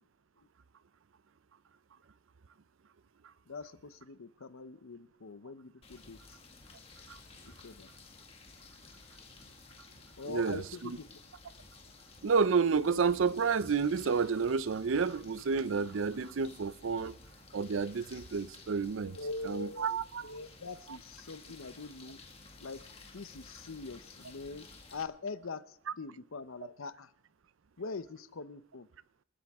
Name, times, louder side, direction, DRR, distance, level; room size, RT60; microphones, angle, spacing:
voice 1, 3.5-6.4 7.4-7.9 10.2-11.2 19.1-22.2 22.6-22.8 23.1-27.1 27.8-28.9, left 3 dB, 75° left, 0.8 m, -43 dB
sound 1, 5.8-25.0, left 3 dB, 30° left, 1.9 m, -54 dB
voice 2, 10.3-11.0 12.2-17.1 17.5-19.2 19.5-20.3, right 5 dB, 65° right, 0.5 m, -30 dB
28.0 x 13.0 x 3.6 m
head